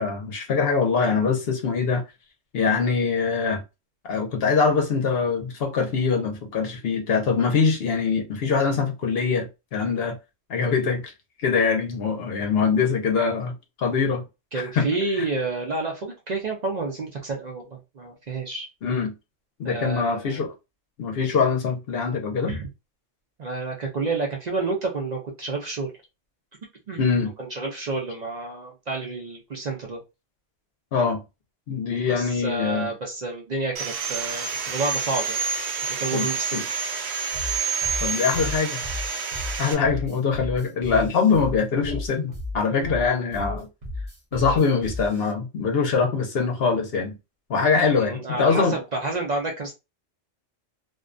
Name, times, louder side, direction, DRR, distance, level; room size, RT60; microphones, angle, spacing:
voice 1, 0.0-2.0 2.5-3.6 4.0-10.2 10.5-11.1 11.4-14.2 14.5-14.9 15.2-15.3 18.8-19.1 19.6-20.5 21.0-22.6 27.0-27.3 30.9-31.2 31.7-32.9 36.1-36.6 38.0-38.8 39.6-43.7 44.3-47.2 47.5-48.8, left 5 dB, 60° left, 0.7 m, -23 dB
voice 2, 14.5-18.7 19.6-20.4 22.5-22.7 23.4-25.9 26.9-27.0 27.4-30.0 32.1-35.4 35.8-36.7 48.0-49.7, right 3 dB, 55° right, 0.4 m, -29 dB
Sawing, 33.8-39.8, right 5 dB, 80° right, 0.9 m, -28 dB
sound 1, 37.3-45.3, left 2 dB, 40° right, 0.8 m, -34 dB
2.4 x 2.2 x 2.4 m
omnidirectional pair, 1.3 m